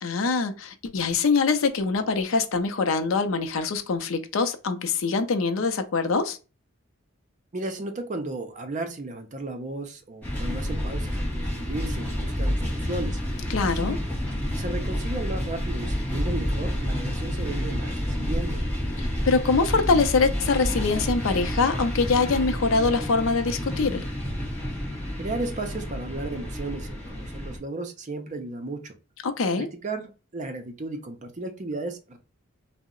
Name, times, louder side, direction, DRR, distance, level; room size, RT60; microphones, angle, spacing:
voice 1, 0.0-6.4 13.5-14.0 19.0-24.0 29.2-29.7, left 4 dB, 65° left, 0.5 m, -24 dB
voice 2, 7.5-13.2 13.8-14.0 14.6-18.6 25.2-28.9 29.5-32.2, right 2 dB, 35° right, 0.5 m, -34 dB
freight train, 10.2-27.6, equal, 10° left, 1.0 m, -29 dB
2.7 x 2.0 x 3.7 m
head